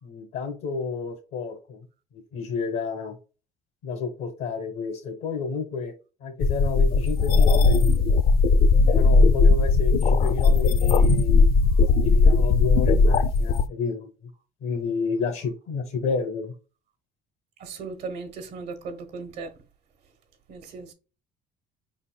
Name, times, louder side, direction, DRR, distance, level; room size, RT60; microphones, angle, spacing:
voice 1, 0.0-1.9 2.1-3.2 3.8-5.9 6.2-7.9 8.8-11.5 11.9-14.3 14.6-16.5, left 4 dB, 85° left, 1.2 m, -30 dB
sound 1, 6.4-13.7, left 4 dB, 65° left, 0.5 m, -18 dB
voice 2, 17.6-19.5 20.5-20.9, right 4 dB, 80° right, 1.1 m, -37 dB
4.8 x 3.9 x 2.2 m
cardioid pair, 110°, 17 cm